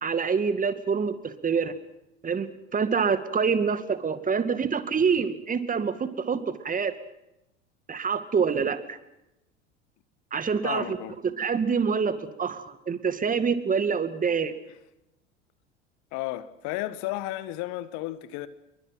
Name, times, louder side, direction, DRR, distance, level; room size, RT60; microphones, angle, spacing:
voice 1, 0.0-1.7 2.2-6.9 7.9-9.0 10.3-11.0 11.2-14.5, right 6 dB, 20° right, 2.2 m, -26 dB
voice 2, 10.6-11.2 16.1-18.5, left 16 dB, 50° left, 1.6 m, -33 dB
29.0 x 23.0 x 6.0 m
figure-of-eight pair, 75°, 36 cm